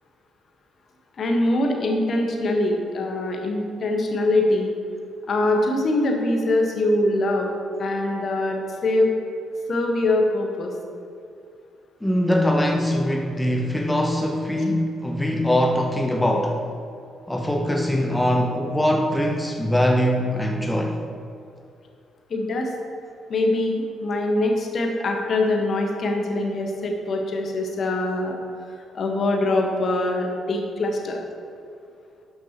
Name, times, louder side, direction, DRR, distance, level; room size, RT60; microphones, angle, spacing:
voice 1, 1.2-4.7 5.3-7.5 7.8-9.1 9.7-10.7 22.3-22.7 23.3-28.3 28.9-31.2, left 2 dB, 50° left, 2 dB, 1.2 m, -23 dB
voice 2, 12.0-16.6 17.3-21.0, equal, 10° left, 3 dB, 0.7 m, -22 dB
12.0 x 6.3 x 2.9 m, 2.5 s
figure-of-eight pair, 40°, 0 cm